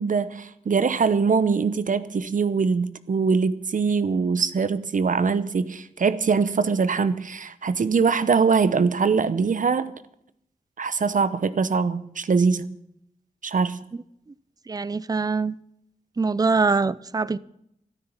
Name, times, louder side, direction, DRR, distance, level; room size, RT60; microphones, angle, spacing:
voice 1, 0.0-9.9 10.8-12.8 13.4-13.9, right 5 dB, 60° right, 0.9 m, -22 dB
voice 2, 14.7-15.5 16.2-17.4, right 4 dB, 25° right, 0.5 m, -23 dB
13.0 x 13.0 x 7.2 m
wide cardioid pair, 95°, 15 cm